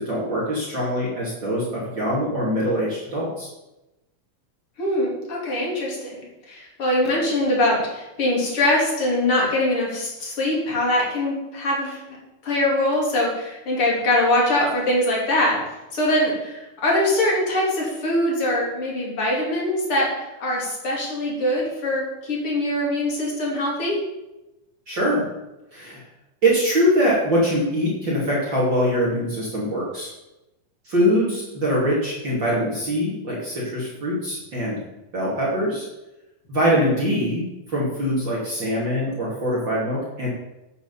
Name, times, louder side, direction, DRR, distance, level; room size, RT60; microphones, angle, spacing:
voice 1, 0.0-3.5 24.9-25.3 25.7-26.0 26.4-30.1 30.8-34.8 35.1-35.9 36.5-40.3, equal, 35° right, -6 dB, 3.0 m, -23 dB
voice 2, 4.8-12.0 12.4-15.6 15.9-24.0, left 1 dB, 35° left, -3 dB, 3.8 m, -23 dB
9.1 x 8.4 x 7.1 m, 0.97 s
omnidirectional pair, 4.3 m